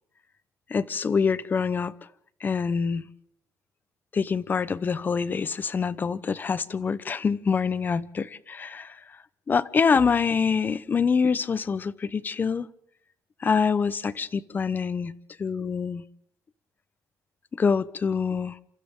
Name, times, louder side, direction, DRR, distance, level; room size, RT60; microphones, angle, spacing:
voice 1, 0.7-1.9 2.4-3.1 4.1-9.0 9.5-12.7 13.4-15.1 15.4-16.0 17.5-18.6, left 5 dB, 30° left, 0.9 m, -25 dB
29.0 x 27.5 x 3.8 m
cardioid pair, 140°, 6 cm